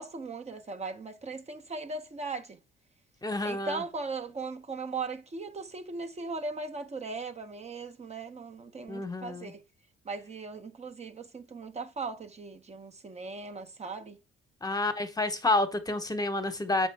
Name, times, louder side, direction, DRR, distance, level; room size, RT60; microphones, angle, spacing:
voice 1, 0.0-2.6 3.4-9.6 10.0-14.2, right 3 dB, 35° right, 0.9 m, -38 dB
voice 2, 3.2-3.8 8.9-9.5 14.6-16.9, left 2 dB, 20° left, 1.0 m, -29 dB
7.3 x 5.3 x 3.4 m
cardioid pair, 90°, 20 cm